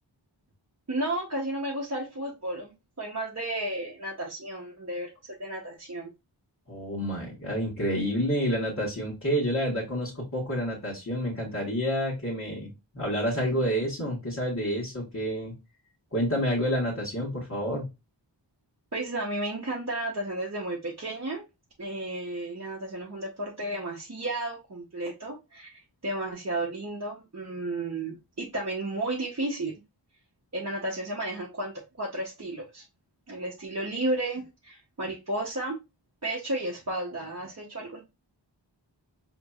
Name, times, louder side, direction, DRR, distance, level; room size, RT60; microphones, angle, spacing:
voice 1, 0.9-6.1 18.9-21.4 21.8-29.7 30.5-31.7 32.0-32.8 33.3-35.8 36.2-38.0, right 1 dB, 35° right, 0.9 m, -33 dB
voice 2, 6.7-15.5 16.1-17.9, equal, 40° left, 1.6 m, -29 dB
4.5 x 2.9 x 2.3 m
wide cardioid pair, 45°, 44 cm